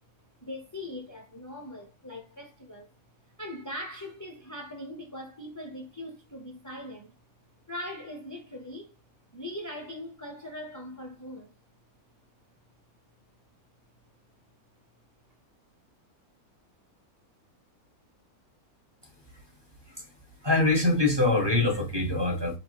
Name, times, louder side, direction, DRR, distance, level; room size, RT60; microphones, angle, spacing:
voice 1, 0.4-2.9 3.4-7.1 7.7-9.0 9.3-11.6, left 1 dB, 30° left, 0.3 m, -40 dB
voice 2, 20.4-22.6, left 2 dB, 20° right, 0.9 m, -24 dB
5.3 x 2.4 x 2.9 m
omnidirectional pair, 1.6 m